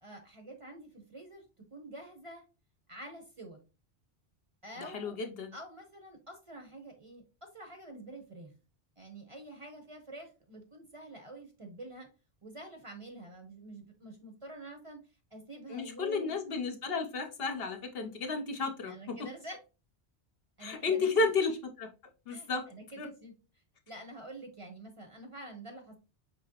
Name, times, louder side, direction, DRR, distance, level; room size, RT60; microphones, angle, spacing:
voice 1, 0.0-1.4 1.7-2.4 2.9-3.6 4.6-5.2 5.5-8.5 9.0-12.1 12.4-15.0 15.3-16.4 18.9-19.6 20.6-21.3 22.3-23.3 23.9-26.0, right 1 dB, 30° right, 3 dB, 0.7 m, -47 dB
voice 2, 4.8-5.5 15.7-19.2 20.6-21.9 22.3-22.7 23.0-23.1, left 4 dB, 60° left, 5 dB, 0.9 m, -32 dB
5.4 x 2.9 x 2.8 m, 0.31 s
omnidirectional pair, 1.2 m